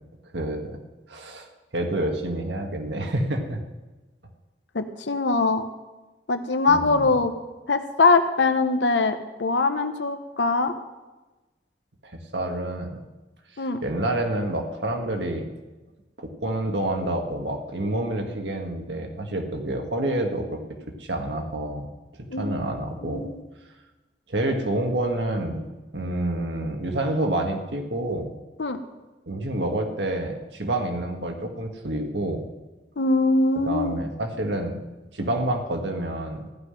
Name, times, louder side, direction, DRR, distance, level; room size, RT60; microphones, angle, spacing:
voice 1, 0.3-0.8 1.1-1.5 1.7-3.6 6.7-7.1 12.0-13.0 13.8-15.5 16.2-20.6 21.0-21.9 22.4-23.3 24.3-25.6 25.9-28.3 29.3-32.5 33.6-34.8 35.1-36.4, right 1 dB, 80° right, 3 dB, 1.6 m, -28 dB
voice 2, 4.7-5.6 6.3-7.3 7.7-10.7 13.6-13.8 22.3-22.6 23.0-23.4 28.6-28.8 33.0-34.0, left 3 dB, 85° left, 8 dB, 0.9 m, -22 dB
15.0 x 5.8 x 9.9 m, 1.2 s
head